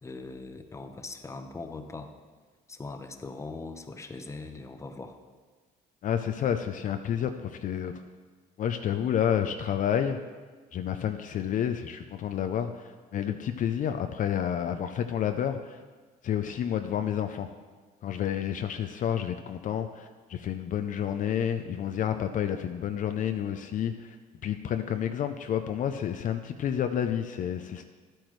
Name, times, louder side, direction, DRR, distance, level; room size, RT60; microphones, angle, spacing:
voice 1, 0.0-2.1 2.7-5.2, left 3 dB, 15° left, 7 dB, 0.7 m, -41 dB
voice 2, 6.0-7.9 8.6-10.2 10.7-15.8 16.2-17.5 18.0-24.2 24.4-27.9, left 9 dB, 50° left, 7 dB, 0.5 m, -30 dB
12.5 x 8.8 x 3.2 m, 1.4 s
cardioid pair, 110°, 17 cm